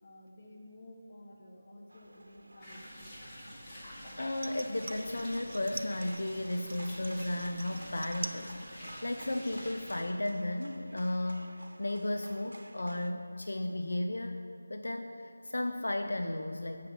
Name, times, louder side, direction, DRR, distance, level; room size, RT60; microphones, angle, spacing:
voice 1, 0.0-2.9, left 1 dB, 35° left, 0 dB, 1.6 m, -52 dB
sound 1, 1.9-13.1, right 1 dB, 80° right, 1.0 m, -54 dB
sound 2, 2.6-10.0, equal, 15° left, 2.3 m, -47 dB
voice 2, 3.7-14.4 14.7-16.9, left 1 dB, 70° left, 5 dB, 0.7 m, -34 dB
sound 3, 4.4-6.3 6.7-8.5 8.8-9.4 9.7-9.8, right 3 dB, 45° right, 0.6 m, -45 dB
9.2 x 6.7 x 8.0 m, 2.6 s
figure-of-eight pair, 170°, 0 cm